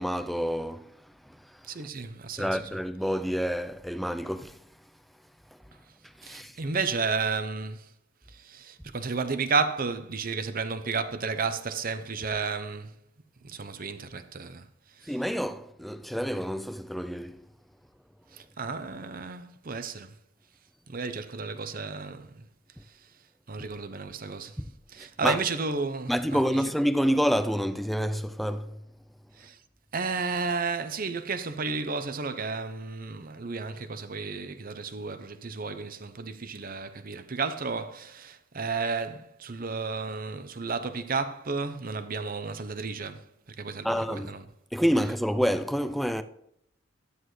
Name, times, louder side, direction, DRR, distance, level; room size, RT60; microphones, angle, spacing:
voice 1, 0.0-1.7 2.4-4.6 5.5-5.6 6.0-6.6 15.0-17.5 24.6-24.7 25.0-25.4 26.1-28.8 43.8-44.3 44.7-46.2, equal, ahead, 0.4 m, -28 dB
voice 2, 1.6-2.6 6.2-7.9 8.3-13.0 13.4-15.2 18.3-20.1 20.9-22.5 22.8-23.1 23.5-24.6 24.9-26.7 29.3-29.6 29.9-44.5, right 4 dB, 45° right, 0.8 m, -32 dB
12.5 x 9.6 x 3.2 m
head